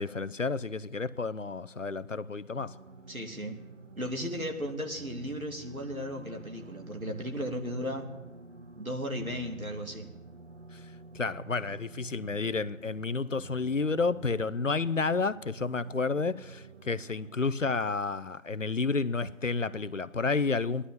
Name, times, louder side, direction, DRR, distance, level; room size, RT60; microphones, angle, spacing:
voice 1, 0.0-2.7 10.7-10.8 11.1-20.9, left 4 dB, 65° left, 0.7 m, -30 dB
sound 1, 2.5-17.8, right 3 dB, 55° right, 0.9 m, -49 dB
voice 2, 3.1-3.6 4.0-8.1 8.8-10.1, equal, 85° right, 2.8 m, -35 dB
16.0 x 11.5 x 7.2 m
figure-of-eight pair, 165°, 41 cm